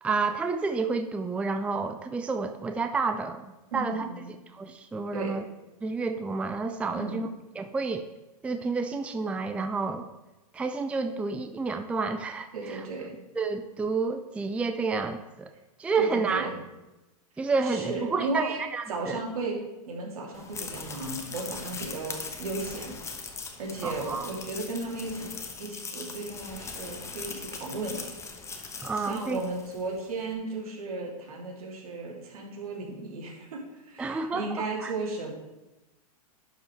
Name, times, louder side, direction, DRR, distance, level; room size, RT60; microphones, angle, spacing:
voice 1, 0.0-4.1 4.5-5.4 5.8-7.3 7.6-8.1 8.4-10.1 10.5-12.8 13.4-15.5 15.8-16.5 17.4-19.2 23.8-24.3 28.8-29.4 34.0-34.9, right 4 dB, 5° right, 8 dB, 0.4 m, -30 dB
voice 2, 3.7-4.3 5.1-5.4 6.9-7.2 12.5-13.1 16.0-16.5 17.6-18.6 18.9-19.6 19.9-23.0 23.6-25.3 25.6-28.0 28.9-35.3, right 3 dB, 75° right, -2 dB, 3.0 m, -35 dB
sound 1, 20.3-29.9, left 4 dB, 15° left, 1.0 m, -40 dB
11.0 x 5.4 x 4.7 m, 1.0 s
hypercardioid pair, 130°, 19 cm